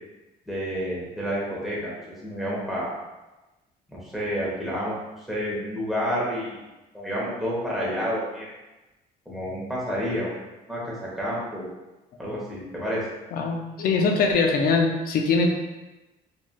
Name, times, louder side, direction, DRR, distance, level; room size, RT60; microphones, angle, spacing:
voice 1, 0.5-1.9 2.2-2.9 3.9-5.0 5.3-6.6 6.9-8.5 9.3-10.3 10.7-11.7 12.2-13.0, equal, ahead, -6 dB, 1.0 m, -29 dB
voice 2, 13.3-15.5, left 4 dB, 60° left, 3 dB, 0.5 m, -22 dB
3.0 x 2.6 x 2.2 m, 1.1 s
cardioid pair, 110°, 17 cm